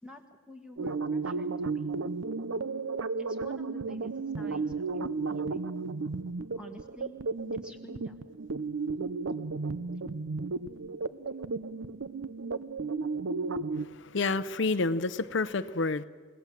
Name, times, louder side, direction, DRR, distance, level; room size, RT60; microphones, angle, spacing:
voice 1, 0.0-1.9 3.2-5.7 6.6-7.2 7.5-8.2, equal, 5° right, 4 dB, 1.7 m, -49 dB
sound 1, 0.8-13.9, right 4 dB, 80° right, 0.7 m, -34 dB
voice 2, 13.8-16.0, left 3 dB, 65° left, 11 dB, 0.7 m, -29 dB
30.0 x 17.5 x 7.5 m, 1.5 s
head